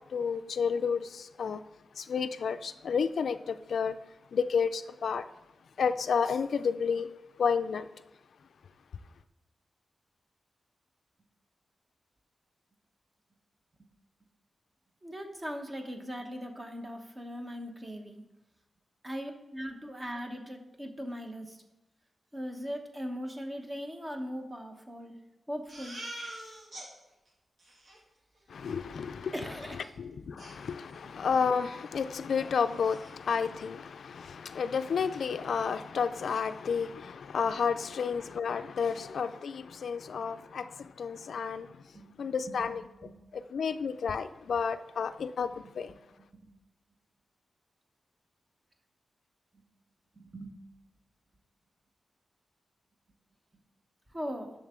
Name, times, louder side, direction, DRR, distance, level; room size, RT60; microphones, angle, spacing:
voice 1, 0.1-1.6 2.0-4.0 4.3-5.3 5.8-7.1 7.4-7.9 28.5-29.3 30.0-41.8 42.2-45.9, left 6 dB, 80° left, 0.4 m, -31 dB
voice 2, 15.0-18.2 19.0-21.6 22.3-25.2 25.5-26.0 29.3-29.8 30.3-30.4 31.2-31.3 38.9-39.0 41.9-42.8 43.0-43.2 45.6-45.7 46.4-46.5 50.1-50.5 54.1-54.5, equal, 20° right, 1.0 m, -40 dB
Crying sobbing, 25.7-26.9 27.3-27.4 27.6-28.0 29.8-29.9 30.4-31.2 31.5-31.7 32.0-32.1 32.5-33.1, right 1 dB, 55° right, 2.4 m, -45 dB
10.5 x 6.6 x 3.7 m
wide cardioid pair, 140°, 0 cm